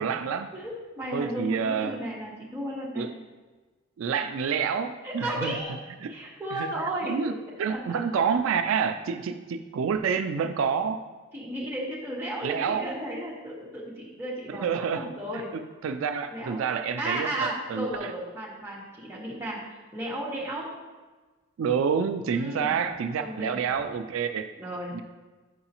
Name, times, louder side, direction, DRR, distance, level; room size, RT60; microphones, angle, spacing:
voice 1, 0.0-0.5 1.1-2.0 2.9-3.1 4.0-5.6 6.0-6.1 6.5-6.7 7.0-7.3 7.6-11.0 12.4-12.9 14.5-15.1 15.3-18.1 21.6-24.5 24.9-25.0, right 6 dB, 80° right, 8 dB, 0.3 m, -28 dB
voice 2, 0.5-3.1 5.0-5.7 6.1-7.4 7.7-7.8 11.3-15.5 16.3-16.6 17.0-19.6 19.9-20.7 22.3-22.8 23.2-23.6 24.6-24.9, right 1 dB, 10° right, -6 dB, 1.3 m, -34 dB
7.8 x 4.7 x 2.9 m, 1.3 s
head